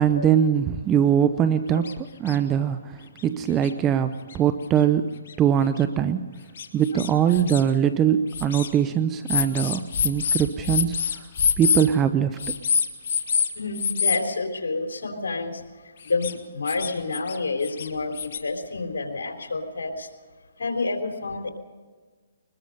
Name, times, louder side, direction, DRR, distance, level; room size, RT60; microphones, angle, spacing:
voice 1, 0.0-5.1 5.4-6.3 6.7-11.3 11.6-12.5, right 9 dB, 20° right, 11 dB, 0.6 m, -22 dB
sound 1, 1.8-1.9 2.3-2.4 3.2-3.3 3.6-3.7 4.3-4.4 5.3-5.4 5.8-5.9 6.6-7.6 8.3-8.7 9.3-11.9 12.4-13.5 13.7-14.2 16.0-16.3 16.7-17.4 17.6-18.4, left 7 dB, 60° left, 1.9 m, -25 dB
voice 2, 13.6-15.6 16.0-20.1 20.6-21.5, left 3 dB, 85° left, 4 dB, 3.8 m, -29 dB
22.0 x 21.0 x 5.5 m, 1.4 s
hypercardioid pair, 150°, 0 cm